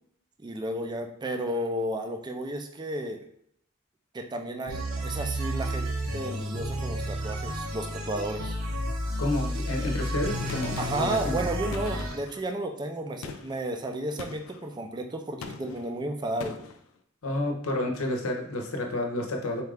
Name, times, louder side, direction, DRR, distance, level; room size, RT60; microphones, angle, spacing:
voice 1, 0.4-3.2 4.1-8.6 10.8-16.6, right 1 dB, 20° right, 4 dB, 0.4 m, -33 dB
sound 1, 4.7-12.2, equal, 75° right, 0.8 m, -32 dB
voice 2, 9.2-11.3 17.2-19.6, left 1 dB, 85° left, 3 dB, 0.7 m, -30 dB
Gunshot gunfire, 10.5-11.2 11.7-12.4 13.2-13.6 14.2-14.6 15.4-15.9 16.4-16.8, left 4 dB, 70° left, 0.4 m, -41 dB
4.2 x 2.4 x 3.4 m, 0.68 s
head